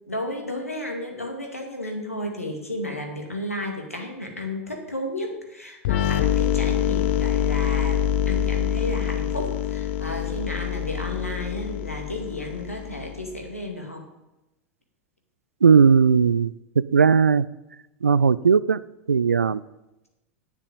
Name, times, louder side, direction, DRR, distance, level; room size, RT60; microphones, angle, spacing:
voice 1, 0.1-14.0, left 1 dB, 90° left, 1 dB, 2.2 m, -33 dB
sound 1, 5.8-13.4, left 9 dB, 55° left, 0.5 m, -25 dB
voice 2, 15.6-16.5 16.9-17.4 18.0-18.8 19.1-19.6, right 6 dB, 80° right, 19 dB, 0.4 m, -17 dB
9.7 x 7.5 x 8.3 m, 0.99 s
figure-of-eight pair, 90°, 7 cm